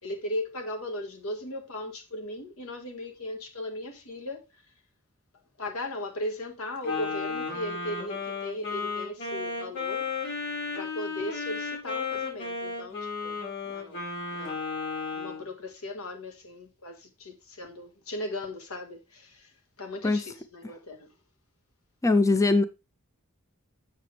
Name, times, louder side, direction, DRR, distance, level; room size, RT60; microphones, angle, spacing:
voice 1, 0.0-4.6 5.6-10.1 10.7-14.0 14.3-14.6 15.1-19.5 19.8-21.1, left 1 dB, 85° left, 1.7 m, -37 dB
Wind instrument woodwind instrument, 6.8-15.4, left 4 dB, 55° left, 5.4 m, -34 dB
voice 2, 22.0-22.6, left 3 dB, 15° left, 0.4 m, -21 dB
7.6 x 6.6 x 3.3 m
head